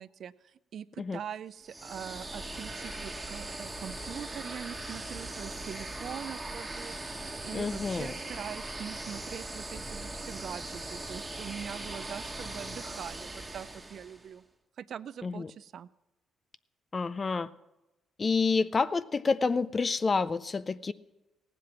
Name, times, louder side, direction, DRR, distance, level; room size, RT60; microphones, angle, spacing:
voice 1, 0.0-14.4 14.8-15.9, right 8 dB, 60° right, 16 dB, 0.4 m, -43 dB
sound 1, 1.6-14.3, right 2 dB, 15° right, 1.3 m, -40 dB
voice 2, 7.5-8.1 15.2-15.5 16.9-17.5 18.2-20.9, left 4 dB, 35° left, 16 dB, 0.4 m, -28 dB
17.0 x 7.6 x 6.0 m, 0.99 s
cardioid pair, 90°, 0 cm